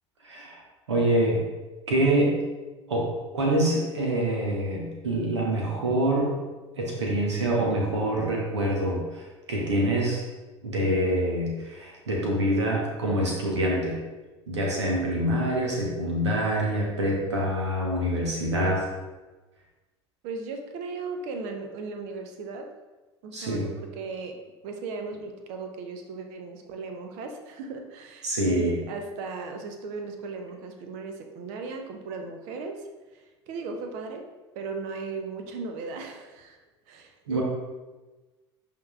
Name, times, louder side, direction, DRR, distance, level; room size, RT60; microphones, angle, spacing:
voice 1, 0.2-0.6 0.9-1.4 1.9-2.4 2.9-6.3 6.8-10.2 10.6-14.0 14.5-18.8 23.3-23.7 28.2-28.8 37.3-37.4, right 1 dB, 75° right, -2 dB, 1.1 m, -25 dB
voice 2, 20.2-22.7 23.2-24.4 24.6-32.9 33.1-34.2 34.5-36.6 36.9-37.4, right 4 dB, 50° right, 4 dB, 0.8 m, -37 dB
10.5 x 3.7 x 2.4 m, 1.2 s
figure-of-eight pair, 70°, 15 cm